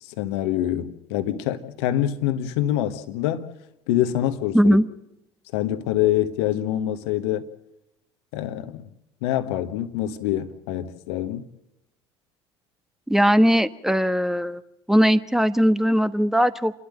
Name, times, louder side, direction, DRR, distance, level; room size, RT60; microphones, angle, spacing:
voice 1, 0.0-3.5 3.9-4.8 5.5-7.5 8.3-8.9 9.2-11.5, left 12 dB, 70° left, 1.3 m, -25 dB
voice 2, 4.5-4.8 13.1-14.6 14.9-16.7, equal, 5° right, 1.2 m, -19 dB
28.5 x 12.5 x 7.7 m
hypercardioid pair, 65°, 15 cm